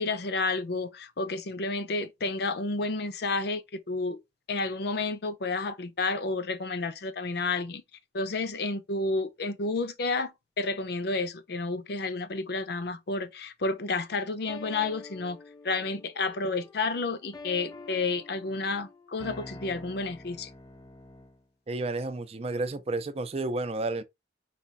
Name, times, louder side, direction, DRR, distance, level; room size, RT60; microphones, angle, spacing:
voice 1, 0.0-4.2 4.5-7.8 8.1-15.4 15.6-20.5, left 3 dB, 60° left, 0.6 m, -31 dB
sound 1, 14.5-21.4, left 2 dB, 20° left, 0.5 m, -47 dB
voice 2, 21.7-24.0, right 2 dB, 35° right, 0.5 m, -31 dB
4.8 x 2.4 x 4.0 m
head